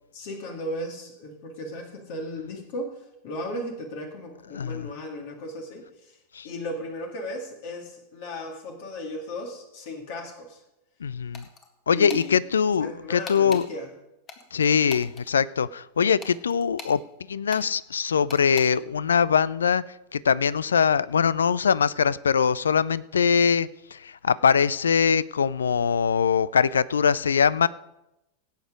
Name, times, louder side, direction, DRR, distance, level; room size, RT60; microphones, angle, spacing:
voice 1, 0.1-2.9 3.2-5.8 6.4-10.6 11.9-12.3 12.8-13.9, left 1 dB, 50° left, 3 dB, 2.3 m, -35 dB
voice 2, 4.5-4.9 6.3-6.5 11.0-11.4 11.9-13.7 14.5-17.0 17.3-19.8 20.1-27.7, left 6 dB, 70° left, 20 dB, 0.4 m, -22 dB
sound 1, 11.3-11.7 12.1-12.3 13.3-13.7 14.3-15.3 16.2-17.0 17.5-17.7 18.3-18.7, left 5 dB, 25° left, 1.8 m, -41 dB
17.0 x 8.1 x 5.1 m, 0.91 s
figure-of-eight pair, 90°, 0 cm